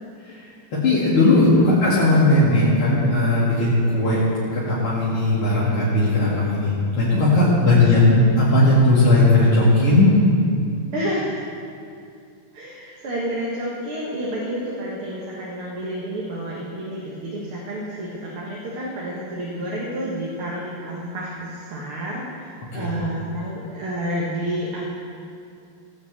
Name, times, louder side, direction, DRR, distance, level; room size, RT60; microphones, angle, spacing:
voice 1, 0.7-4.2 4.5-10.1 22.7-22.9, left 2 dB, 75° left, -9 dB, 3.2 m, -17 dB
voice 2, 10.9-11.2 12.5-24.8, right 1 dB, 80° right, -4 dB, 2.6 m, -30 dB
17.5 x 6.3 x 8.1 m, 2.4 s
omnidirectional pair, 2.4 m